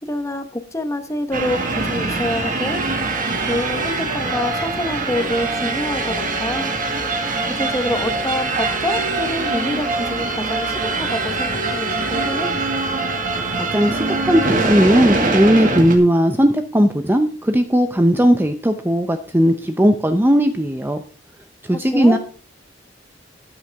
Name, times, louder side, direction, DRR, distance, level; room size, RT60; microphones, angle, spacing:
voice 1, 0.0-2.8 3.4-6.7 7.5-12.6 21.7-22.2, left 1 dB, 15° left, 8 dB, 1.3 m, -26 dB
sound 1, 1.3-16.0, right 3 dB, 45° right, 2.1 m, -23 dB
voice 2, 13.6-21.0 21.6-22.2, equal, 10° right, 7 dB, 0.6 m, -17 dB
13.5 x 9.5 x 3.5 m, 0.41 s
head